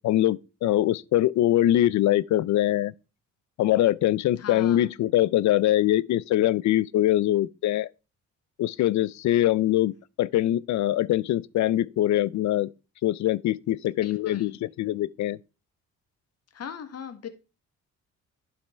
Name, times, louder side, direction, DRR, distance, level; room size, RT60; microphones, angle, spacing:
voice 1, 0.0-2.9 3.6-7.9 8.6-12.7 13.0-15.4, left 13 dB, 70° left, 0.6 m, -23 dB
voice 2, 4.4-4.9 14.0-14.5 16.5-17.3, left 7 dB, 55° left, 1.7 m, -39 dB
12.0 x 5.7 x 4.4 m
cardioid pair, 90°, 30 cm